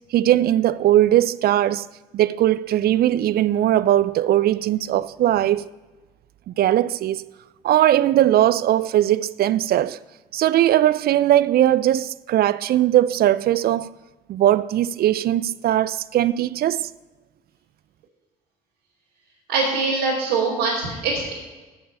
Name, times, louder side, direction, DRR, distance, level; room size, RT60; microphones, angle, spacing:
voice 1, 0.1-1.9 2.1-5.7 6.5-7.3 7.6-10.0 10.3-13.9 14.3-16.9, right 12 dB, 50° right, 0.4 m, -19 dB
voice 2, 19.5-21.3, right 3 dB, 80° right, 2.6 m, -23 dB
14.5 x 5.3 x 5.4 m
hypercardioid pair, 50°, 20 cm